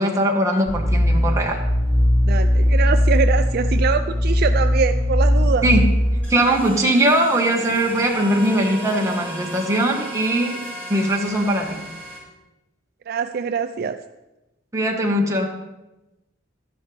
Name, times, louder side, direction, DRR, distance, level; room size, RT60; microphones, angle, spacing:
voice 1, 0.0-1.6 5.6-5.8 6.3-10.6 10.9-11.8 14.7-15.5, right 1 dB, 15° right, 0 dB, 1.4 m, -20 dB
sound 1, 0.7-6.2, left 1 dB, 75° left, 2.9 m, -18 dB
voice 2, 2.2-5.7 13.1-14.0, right 6 dB, 50° right, 9 dB, 0.4 m, -24 dB
sound 2, 6.2-12.2, right 2 dB, 10° left, 4.5 m, -35 dB
12.5 x 10.5 x 3.4 m, 1.0 s
head